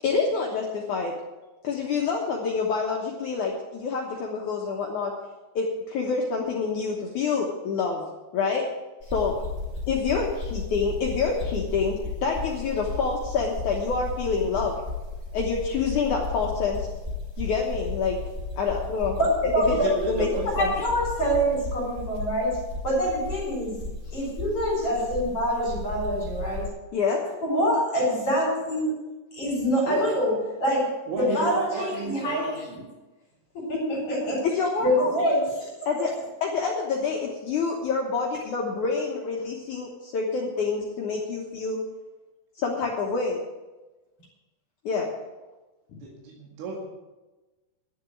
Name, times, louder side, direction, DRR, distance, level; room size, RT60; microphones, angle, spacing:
voice 1, 0.0-1.1 1.6-5.1 5.6-8.1 8.3-8.7 9.1-9.3 9.9-14.7 15.3-16.9 17.4-18.2 18.6-19.2 19.7-19.8 20.1-20.3 20.6-20.7 26.9-27.2 34.4-35.1 35.9-36.1 36.4-41.8 42.6-43.4 44.9-45.1, left 5 dB, 80° left, -1 dB, 1.7 m, -27 dB
sound 1, 9.0-26.6, left 3 dB, 45° right, 0.6 m, -34 dB
voice 2, 19.2-19.9 20.6-22.5 22.8-23.8 24.1-26.7 27.3-28.9 29.3-30.3 30.6-32.6 33.5-34.4 34.8-35.7 36.0-36.1, equal, 30° left, -2 dB, 4.3 m, -25 dB
voice 3, 19.7-20.5 20.7-20.8 29.9-30.0 31.1-32.8 46.0-46.9, right 2 dB, 80° right, -2 dB, 4.5 m, -32 dB
11.5 x 7.1 x 9.2 m, 1.1 s
omnidirectional pair, 5.6 m